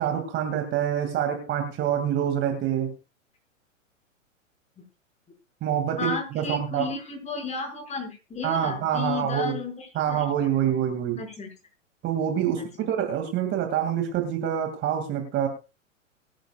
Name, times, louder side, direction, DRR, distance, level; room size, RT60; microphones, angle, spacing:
voice 1, 0.0-2.9 5.6-6.9 8.4-9.6 9.9-11.2 12.0-15.5, right 9 dB, 30° right, 5 dB, 2.5 m, -26 dB
voice 2, 6.0-10.2 11.2-11.5 12.6-12.9, left 4 dB, 15° left, 2 dB, 6.0 m, -33 dB
23.0 x 10.5 x 2.4 m, 0.30 s
hypercardioid pair, 120°, 39 cm